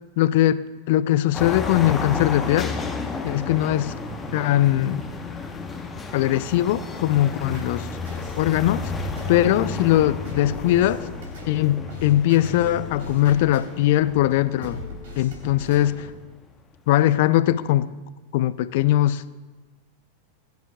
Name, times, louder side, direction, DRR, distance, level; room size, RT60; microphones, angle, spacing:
voice 1, 0.2-2.7 3.2-3.9 4.3-5.0 6.1-7.9 8.4-8.9 9.3-11.1 11.5-14.8 15.2-16.1 16.9-17.9 18.3-19.2, left 13 dB, 50° left, 16 dB, 0.4 m, -20 dB
sound 1, 1.3-16.1, left 4 dB, 15° left, 1.0 m, -33 dB
sound 2, 7.5-16.2, left 1 dB, 60° right, 3.5 m, -39 dB
20.5 x 10.5 x 2.3 m, 1.3 s
figure-of-eight pair, 90°, 0 cm